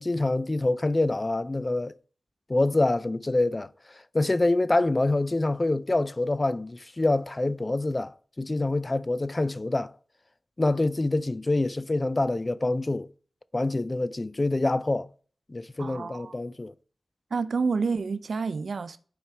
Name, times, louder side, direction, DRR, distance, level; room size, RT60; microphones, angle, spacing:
voice 1, 0.0-1.9 2.5-9.9 10.6-13.1 13.5-15.1 15.5-16.7, left 2 dB, 35° left, 0.4 m, -26 dB
voice 2, 15.8-16.3 17.3-19.0, right 4 dB, 80° right, 0.4 m, -29 dB
9.2 x 4.8 x 3.3 m
cardioid pair, 50°, 0 cm